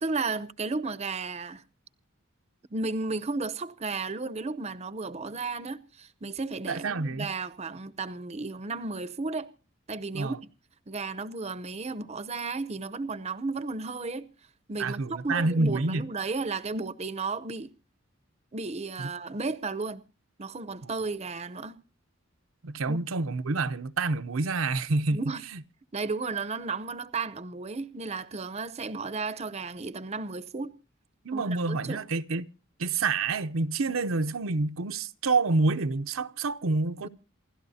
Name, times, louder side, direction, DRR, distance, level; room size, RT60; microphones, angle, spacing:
voice 1, 0.0-1.6 2.7-9.5 9.9-10.4 10.9-14.3 14.7-17.7 18.5-20.0 20.4-21.8 22.9-23.0 25.1-25.4 25.9-30.7 31.3-32.0 37.0-37.1, right 3 dB, 30° right, 0.7 m, -34 dB
voice 2, 6.7-7.3 10.1-10.4 14.8-16.0 20.8-20.9 22.6-25.2 31.2-32.4 32.8-37.1, right 3 dB, 80° right, 0.7 m, -28 dB
28.0 x 12.5 x 2.7 m
head